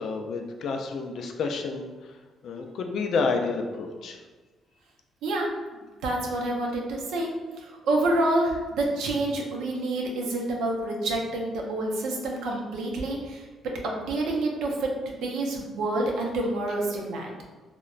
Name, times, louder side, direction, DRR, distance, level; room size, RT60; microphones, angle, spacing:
voice 1, 0.0-2.2 2.4-4.2, left 4 dB, 70° left, 4 dB, 0.3 m, -30 dB
voice 2, 5.2-7.3 7.6-13.5 13.8-17.3, right 2 dB, 85° right, -1 dB, 0.5 m, -28 dB
2.9 x 2.1 x 2.4 m, 1.3 s
cardioid pair, 90°, 0 cm